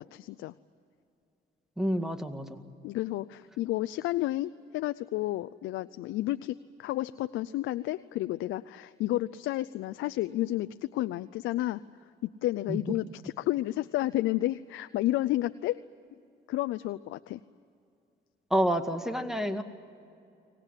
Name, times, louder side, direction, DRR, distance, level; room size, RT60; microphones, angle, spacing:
voice 1, 0.1-0.5 2.8-11.8 12.2-15.8 16.5-17.4, left 15 dB, 90° left, 12 dB, 0.5 m, -31 dB
voice 2, 1.8-2.6 12.7-12.8 18.5-19.6, equal, ahead, 7 dB, 2.0 m, -28 dB
24.0 x 19.0 x 9.8 m, 2.5 s
cardioid pair, 90°, 20 cm